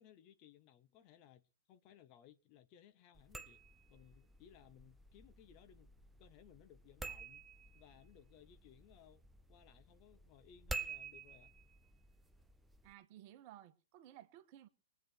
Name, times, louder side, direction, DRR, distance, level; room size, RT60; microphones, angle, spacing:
voice 1, 0.0-3.6 3.9-5.9 6.2-7.4 7.7-9.2 9.5-11.5, left 10 dB, 35° left, 1.0 m, -63 dB
sound 1, 3.1-12.9, right 3 dB, 5° right, 0.6 m, -51 dB
voice 2, 12.8-14.7, right 12 dB, 40° right, 1.3 m, -57 dB
23.0 x 8.2 x 4.5 m
figure-of-eight pair, 115°, 0 cm